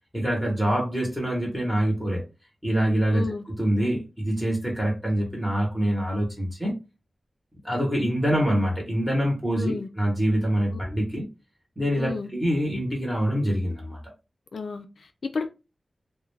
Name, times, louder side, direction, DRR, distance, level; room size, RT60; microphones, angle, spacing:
voice 1, 0.1-2.2 2.6-6.7 7.6-11.3 11.8-14.0, equal, 5° right, 0.9 m, -25 dB
voice 2, 3.1-3.4 9.5-9.9 12.0-12.3 14.5-15.5, left 4 dB, 80° left, 0.3 m, -32 dB
2.3 x 2.1 x 3.1 m
wide cardioid pair, 115°, 0 cm